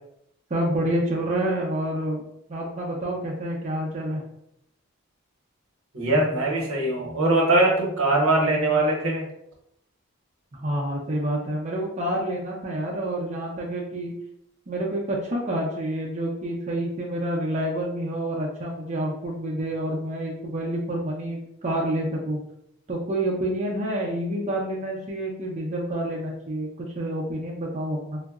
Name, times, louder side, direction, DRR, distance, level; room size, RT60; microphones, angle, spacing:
voice 1, 0.5-2.2 2.5-4.2 10.5-14.1 14.7-22.4 22.9-28.2, right 1 dB, 35° right, -3 dB, 0.4 m, -28 dB
voice 2, 5.9-9.2, right 2 dB, 80° right, 0 dB, 0.8 m, -21 dB
3.6 x 2.0 x 2.3 m, 0.77 s
head